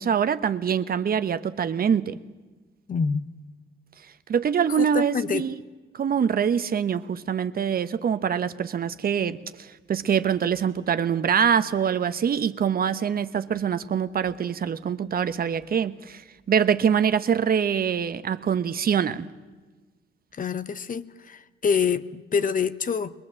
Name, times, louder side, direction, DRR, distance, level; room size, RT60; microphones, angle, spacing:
voice 1, 0.0-2.2 4.3-5.6 5.9-19.3, right 7 dB, 50° right, 12 dB, 1.0 m, -24 dB
voice 2, 2.9-3.3 4.7-5.5 20.3-23.1, left 6 dB, 40° left, 14 dB, 1.0 m, -26 dB
22.5 x 21.5 x 7.6 m, 1.3 s
cardioid pair, 90°, 20 cm